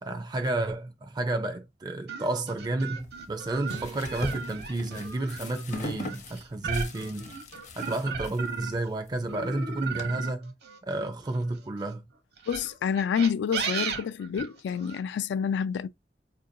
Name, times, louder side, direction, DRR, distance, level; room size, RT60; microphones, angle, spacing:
voice 1, 0.0-7.3 7.8-10.5 10.8-12.0, right 2 dB, 25° right, 0.4 m, -31 dB
sound 1, 2.1-8.9 9.3-11.7 12.4-15.0, right 5 dB, 65° right, 0.8 m, -36 dB
sound 2, 3.0-10.0, left 1 dB, 45° left, 0.6 m, -42 dB
sound 3, 3.7-6.0, right 6 dB, 85° right, 0.4 m, -49 dB
voice 2, 12.5-15.9, left 7 dB, 80° left, 0.3 m, -28 dB
4.5 x 2.6 x 2.6 m
head